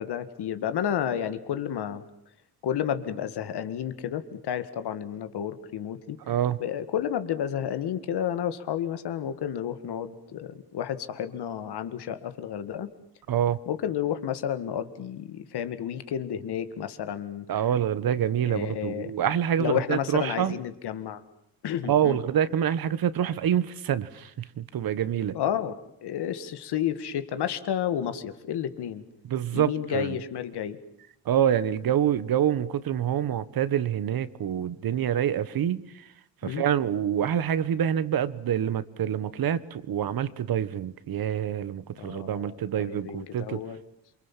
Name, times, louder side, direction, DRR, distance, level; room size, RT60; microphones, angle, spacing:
voice 1, 0.0-2.0 2.6-6.2 6.6-12.9 13.7-17.5 18.5-19.1 19.6-21.2 21.6-22.2 25.3-29.0 29.5-30.8 36.4-36.6 42.0-43.8, left 9 dB, 75° left, 2.0 m, -31 dB
voice 2, 6.3-6.6 13.3-13.6 17.5-20.6 21.8-25.3 29.3-30.2 31.2-35.9 36.4-43.6, right 9 dB, 60° right, 1.3 m, -26 dB
28.0 x 24.5 x 7.4 m
cardioid pair, 140°, 40 cm